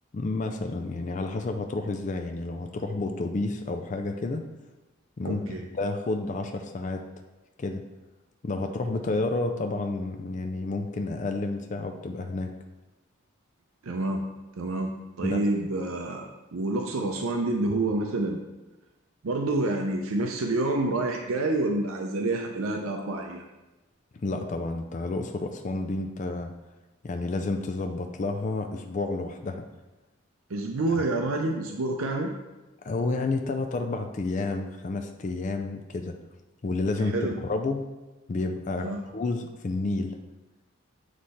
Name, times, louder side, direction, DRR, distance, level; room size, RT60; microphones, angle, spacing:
voice 1, 0.1-4.4 5.2-7.0 7.6-7.8 8.4-12.5 15.2-15.4 24.2-26.5 27.0-29.7 31.0-31.1 32.8-36.2 36.6-37.9 38.3-40.2, left 2 dB, 35° left, 5 dB, 0.3 m, -30 dB
voice 2, 5.2-5.7 13.8-14.2 14.6-14.9 15.2-18.4 19.2-23.5 30.5-32.3 37.0-37.4 38.8-39.0, right 2 dB, 80° right, 2 dB, 0.5 m, -28 dB
7.4 x 3.2 x 4.1 m, 1.1 s
head